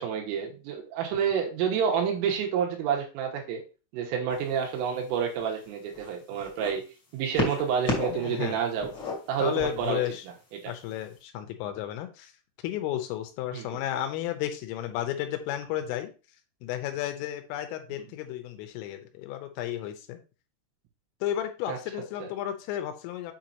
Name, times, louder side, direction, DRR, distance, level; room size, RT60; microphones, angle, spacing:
voice 1, 0.0-3.6 3.9-6.8 7.1-8.9 9.3-10.0 10.5-10.7 13.5-13.7 21.7-21.8 22.2-22.3, right 7 dB, 85° right, 1 dB, 3.8 m, -29 dB
sound 1, 4.3-4.6 5.4-6.7 7.3-8.3 8.6-9.9 10.8-10.9, left 2 dB, 50° left, 1.3 m, -32 dB
voice 2, 8.1-8.6 9.4-10.3 10.7-12.3 12.6-16.1 16.6-20.2 21.2-23.3, left 12 dB, 85° left, 7 dB, 3.4 m, -33 dB
8.1 x 5.3 x 2.9 m, 0.32 s
omnidirectional pair, 5.8 m